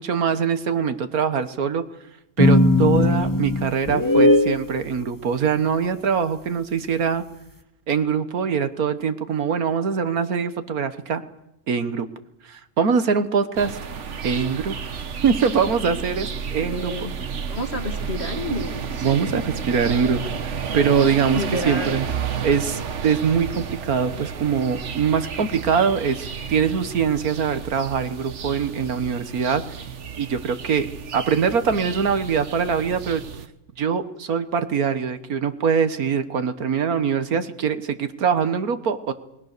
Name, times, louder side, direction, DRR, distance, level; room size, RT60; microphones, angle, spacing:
voice 1, 0.0-1.8 2.4-7.3 7.9-11.2 11.7-12.1 12.5-13.8 14.2-14.7 15.2-17.1 19.0-22.1 22.4-29.9 30.2-30.9 31.1-33.2 33.8-39.1, right 6 dB, 75° right, 11 dB, 1.7 m, -23 dB
sound 1, 2.4-4.6, left 2 dB, 15° left, 0.9 m, -17 dB
sound 2, 13.6-33.5, right 6 dB, 55° right, 1.4 m, -32 dB
voice 2, 16.6-17.1 17.5-19.4 21.3-22.0, left 2 dB, 45° left, 4 dB, 3.0 m, -30 dB
28.5 x 20.5 x 6.7 m, 0.89 s
omnidirectional pair, 1.6 m